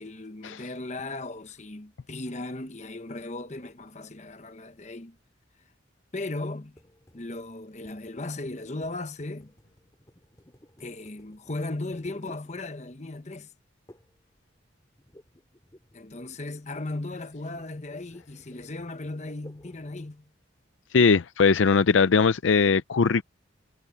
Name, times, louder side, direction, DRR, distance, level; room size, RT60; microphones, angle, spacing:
voice 1, 0.0-5.2 6.1-6.8 7.1-9.5 10.8-13.5 15.9-20.3, left 2 dB, 35° left, 1.1 m, -37 dB
sound 1, 6.8-13.1 13.9-14.3 14.5-20.2, equal, 20° left, 3.4 m, -55 dB
voice 2, 20.9-23.2, left 5 dB, 75° left, 0.5 m, -20 dB
head